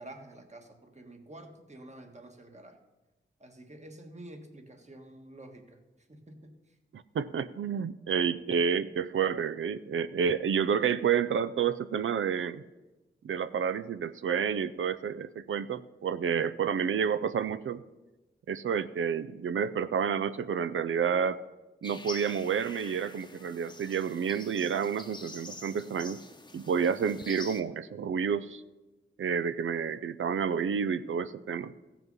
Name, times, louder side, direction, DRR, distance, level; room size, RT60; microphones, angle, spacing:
voice 1, 0.0-2.8 3.4-5.6 6.1-6.5, right 1 dB, 35° right, 5 dB, 1.5 m, -48 dB
voice 2, 6.9-12.6 13.2-17.8 18.5-21.4 21.8-26.2 26.5-28.6 29.2-31.7, right 7 dB, 80° right, 14 dB, 0.5 m, -30 dB
sound 1, 21.8-27.6, left 2 dB, 20° left, 0.9 m, -46 dB
15.0 x 5.9 x 5.4 m, 1.1 s
wide cardioid pair, 75°, 20 cm